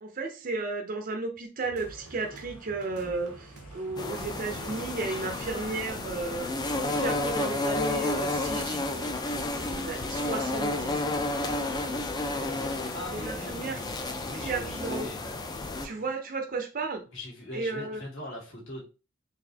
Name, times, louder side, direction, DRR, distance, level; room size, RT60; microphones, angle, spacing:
voice 1, 0.0-11.0 11.5-11.9 13.1-13.8 14.3-15.1 15.8-17.0 17.5-18.0, right 3 dB, 40° right, 0.5 m, -34 dB
sound 1, 1.6-15.0, right 3 dB, 90° right, 0.6 m, -49 dB
harbor-ambiance, 1.8-16.2, equal, 90° left, 1.9 m, -52 dB
sound 2, 4.0-15.9, left 2 dB, 20° left, 0.3 m, -31 dB
voice 2, 12.9-14.0 14.3-15.2 17.0-18.9, left 1 dB, 60° left, 1.5 m, -41 dB
3.9 x 2.5 x 2.8 m
head